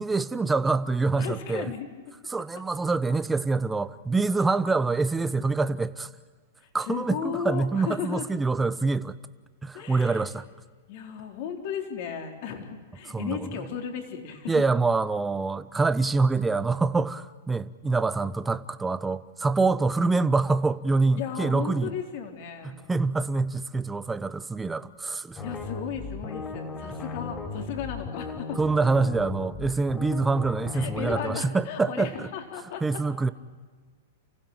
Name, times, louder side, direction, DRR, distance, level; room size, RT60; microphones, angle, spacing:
voice 1, 0.0-1.7 2.3-6.1 6.7-9.1 9.6-10.5 13.1-13.4 14.5-21.9 22.6-25.4 28.6-32.3 32.8-33.3, right 3 dB, 10° right, 1.0 m, -25 dB
voice 2, 1.2-1.9 2.5-2.6 6.9-8.3 9.7-10.3 10.9-14.6 21.2-22.7 25.4-28.6 30.7-33.0, left 8 dB, 55° left, 3.9 m, -35 dB
sound 1, 25.4-31.3, left 3 dB, 20° left, 4.0 m, -37 dB
30.0 x 16.0 x 9.1 m
hypercardioid pair, 120°, 0 cm